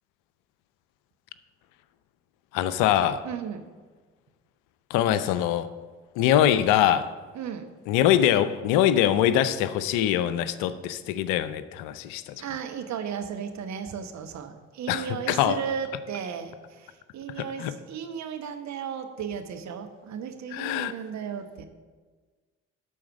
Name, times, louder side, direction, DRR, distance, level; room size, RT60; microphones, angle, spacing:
voice 1, 2.5-3.3 4.9-5.7 6.2-7.1 7.9-12.4 14.9-15.6 17.4-17.7 20.5-20.9, left 11 dB, 65° left, 14 dB, 0.6 m, -23 dB
voice 2, 3.2-3.6 7.3-7.7 12.4-21.7, right 7 dB, 50° right, 7 dB, 1.1 m, -35 dB
11.5 x 4.3 x 7.3 m, 1.4 s
figure-of-eight pair, 45°, 36 cm